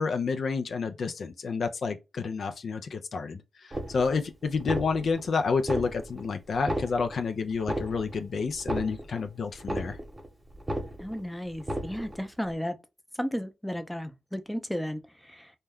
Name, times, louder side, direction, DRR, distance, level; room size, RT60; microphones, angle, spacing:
voice 1, 0.0-10.0, left 5 dB, 65° left, 0.3 m, -29 dB
sound 1, 3.7-4.3 4.5-5.3 5.6-6.3 6.5-7.3 7.6-8.3 8.5-9.3 9.6-10.3 10.5-11.3 11.6-12.3, right 1 dB, 30° right, 0.9 m, -34 dB
voice 2, 11.0-12.8 13.2-15.5, equal, 5° left, 0.5 m, -34 dB
2.2 x 2.2 x 3.4 m
cardioid pair, 60°, 0 cm